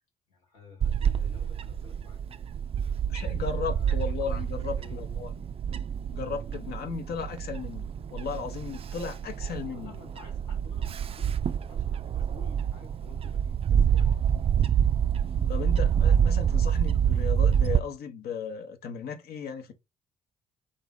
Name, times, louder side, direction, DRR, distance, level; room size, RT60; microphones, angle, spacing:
voice 1, 0.3-2.2 3.2-5.0 7.2-7.3 9.7-14.2, left 4 dB, 75° left, 1.4 m, -51 dB
Bird / Wind, 0.8-17.8, right 8 dB, 30° right, 0.4 m, -27 dB
voice 2, 3.1-5.3 6.1-7.8 8.1-10.0 15.5-19.7, left 6 dB, 55° left, 0.8 m, -35 dB
3.2 x 2.5 x 3.8 m
figure-of-eight pair, 45°, 19 cm